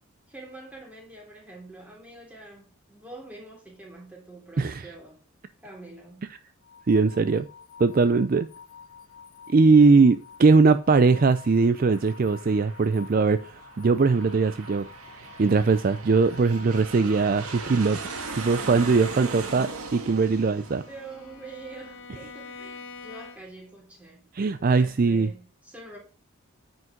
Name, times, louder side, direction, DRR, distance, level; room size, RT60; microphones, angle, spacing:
voice 1, 0.3-5.2 5.6-6.3 20.9-24.3 24.7-26.0, right 2 dB, 5° right, 3.2 m, -45 dB
sound 1, 6.6-17.4, left 7 dB, 70° left, 1.3 m, -49 dB
voice 2, 6.9-7.5 7.8-8.5 9.5-14.9 15.4-18.0 18.4-20.8 24.3-25.3, right 4 dB, 40° right, 0.4 m, -20 dB
Aircraft, 11.3-22.3, right 4 dB, 85° right, 1.9 m, -39 dB
Bowed string instrument, 19.9-23.7, left 4 dB, 55° left, 1.3 m, -45 dB
9.6 x 5.2 x 5.1 m
head